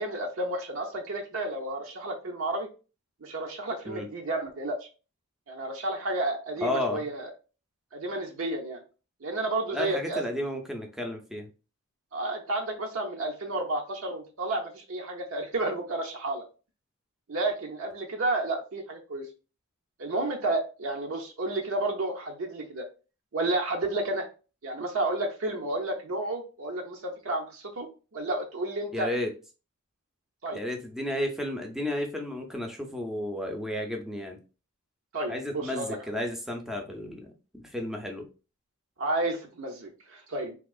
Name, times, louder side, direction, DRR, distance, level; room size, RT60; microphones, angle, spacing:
voice 1, 0.0-2.7 3.2-4.9 5.5-7.3 7.9-8.8 9.2-10.2 12.1-16.4 17.3-19.3 20.0-22.8 23.3-24.3 24.6-29.1 30.4-30.6 35.1-36.0 39.0-40.6, right 2 dB, 60° right, 2 dB, 0.6 m, -31 dB
voice 2, 6.6-7.1 9.7-11.5 28.9-29.3 30.5-34.4 35.3-38.3, left 1 dB, ahead, 3 dB, 0.5 m, -32 dB
3.6 x 2.8 x 2.3 m, 0.33 s
head